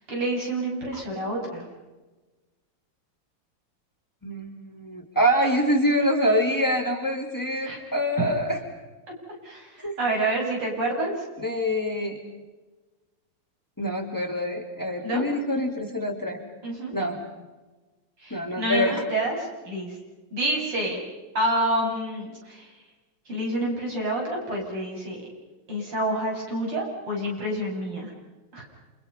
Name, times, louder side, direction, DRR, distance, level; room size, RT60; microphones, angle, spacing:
voice 1, 0.1-1.6 7.6-7.8 9.4-11.2 15.0-15.3 16.6-16.9 18.2-19.9 20.3-21.0 21.3-22.7 23.3-25.2 25.7-28.1 28.5-28.7, right 1 dB, 85° right, -1 dB, 8.3 m, -28 dB
voice 2, 4.2-8.6 9.8-9.9 11.4-12.2 13.8-16.4 16.9-17.2 18.3-19.0, equal, 10° left, 2 dB, 3.5 m, -25 dB
29.0 x 28.0 x 5.6 m, 1.2 s
omnidirectional pair, 2.4 m